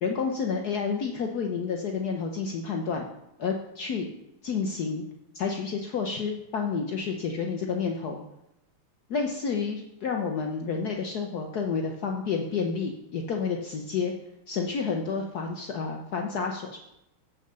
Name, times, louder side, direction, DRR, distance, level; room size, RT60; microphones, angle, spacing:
voice 1, 0.0-3.1 3.4-4.1 4.4-5.0 5.3-8.2 9.1-14.1 14.5-16.8, left 5 dB, 60° left, 3 dB, 1.1 m, -30 dB
7.8 x 6.3 x 6.7 m, 0.85 s
omnidirectional pair, 2.3 m